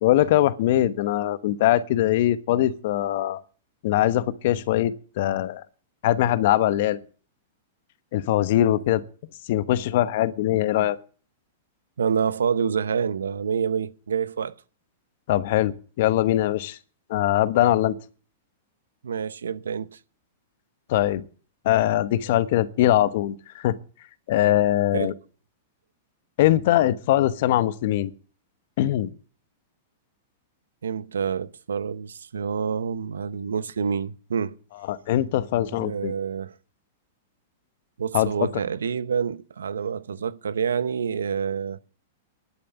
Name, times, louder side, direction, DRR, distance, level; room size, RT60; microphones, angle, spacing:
voice 1, 0.0-3.4 3.8-5.6 6.0-7.0 8.1-9.0 9.5-11.0 15.3-16.8 17.1-18.0 20.9-21.2 21.6-23.8 24.3-25.1 26.4-28.1 28.8-29.1 34.9-36.1 38.1-38.3, left 13 dB, 60° left, 1.0 m, -22 dB
voice 2, 10.5-10.9 12.0-14.6 19.0-20.0 24.9-25.1 30.8-34.6 35.7-36.5 38.0-41.8, right 7 dB, 85° right, 0.7 m, -27 dB
11.5 x 8.7 x 7.1 m
hypercardioid pair, 115°, 0 cm